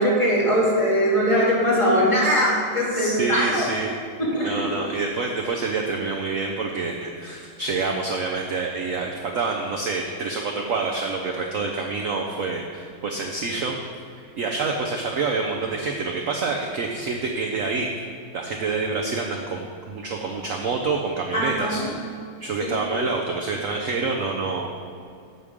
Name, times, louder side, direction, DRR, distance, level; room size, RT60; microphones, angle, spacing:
voice 1, 0.0-3.7 4.2-4.6 21.3-21.9 22.6-23.0, equal, 15° left, -7 dB, 2.5 m, -21 dB
voice 2, 2.9-3.9 4.4-13.7 14.1-17.9 18.3-21.9 22.4-24.7, right 4 dB, 60° right, 1 dB, 0.8 m, -27 dB
11.0 x 8.2 x 3.7 m, 2.4 s
omnidirectional pair, 2.2 m